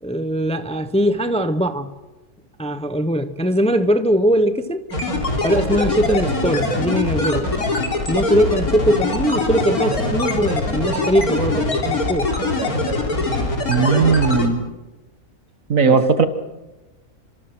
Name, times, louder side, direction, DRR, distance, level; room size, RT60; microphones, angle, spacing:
voice 1, 0.0-1.9 2.6-4.9 5.4-7.5 8.1-12.3 15.9-16.0, equal, 5° left, 9 dB, 0.9 m, -20 dB
sound 1, 4.9-14.5, left 2 dB, 80° left, 4.1 m, -22 dB
voice 2, 13.7-14.6 15.7-16.3, right 5 dB, 65° right, 10 dB, 1.9 m, -16 dB
29.5 x 26.0 x 6.2 m, 1.1 s
omnidirectional pair, 1.5 m